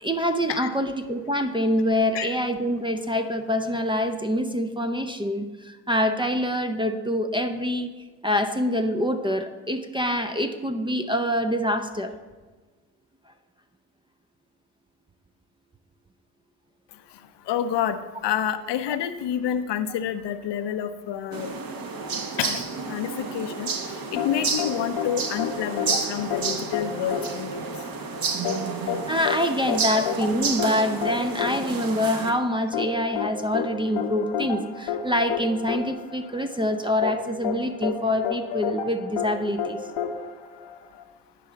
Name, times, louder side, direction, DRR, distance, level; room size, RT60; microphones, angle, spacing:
voice 1, 0.0-7.9 8.2-12.1 18.9-19.0 21.9-22.0 28.7-39.8, equal, 10° right, 7 dB, 0.5 m, -25 dB
voice 2, 17.5-21.5 22.4-23.7 24.1-27.7 29.9-30.0 30.7-30.8, left 9 dB, 55° left, 9 dB, 0.7 m, -29 dB
sound 1, 21.3-32.3, right 5 dB, 45° right, 1.2 m, -31 dB
sound 2, 24.2-41.0, left 7 dB, 75° left, 1.1 m, -31 dB
10.0 x 5.5 x 4.0 m, 1.3 s
hypercardioid pair, 60°, 49 cm